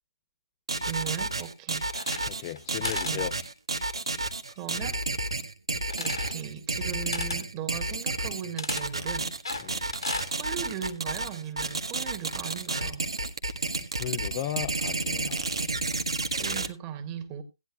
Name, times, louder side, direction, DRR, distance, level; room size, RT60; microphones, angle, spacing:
sound 1, 0.7-16.7, right 2 dB, 75° right, 1.4 m, -31 dB
voice 1, 0.9-1.9 3.0-3.3 4.2-5.0 6.0-9.3 9.7-10.0 10.3-13.0 16.4-17.4, right 9 dB, 20° right, 1.9 m, -38 dB
sound 2, 1.9-2.6 2.8-3.2 5.9-6.4 7.1-7.4 8.6-8.9 9.5-10.3, left 4 dB, 70° left, 1.5 m, -35 dB
voice 2, 2.3-3.3 9.6-9.8 14.0-15.5, left 13 dB, 25° left, 0.7 m, -35 dB
17.5 x 10.0 x 2.4 m
figure-of-eight pair, 140°, 3 cm